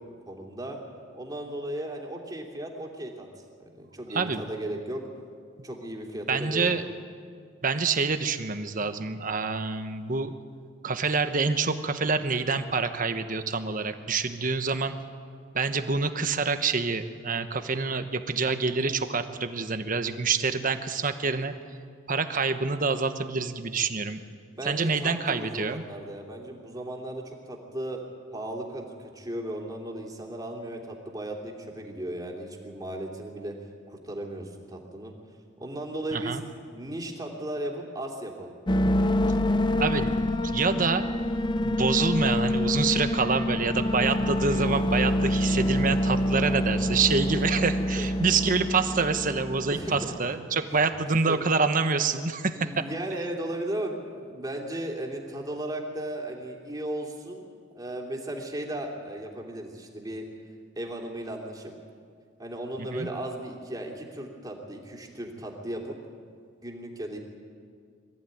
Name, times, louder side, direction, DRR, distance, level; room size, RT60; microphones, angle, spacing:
voice 1, 0.1-0.8 1.1-3.3 3.6-5.0 5.6-6.9 24.5-28.0 28.3-33.6 33.9-35.1 35.6-36.4 36.7-38.5 47.3-47.4 48.0-48.1 49.7-50.1 50.8-50.9 51.3-51.4 52.5-57.5 57.7-60.2 60.7-61.7 62.4-66.0 66.6-67.2, right 1 dB, 20° right, 0 dB, 2.8 m, -36 dB
voice 2, 6.3-6.8 7.6-10.3 10.8-14.9 15.5-21.5 22.1-24.2 24.6-25.8 36.1-36.4 39.8-40.1 40.4-41.0 41.6-52.9 62.9-63.1, right 4 dB, 45° right, 9 dB, 1.1 m, -27 dB
sound 1, 38.7-50.2, left 1 dB, 25° left, 0.5 m, -26 dB
24.0 x 14.5 x 9.3 m, 2.1 s
head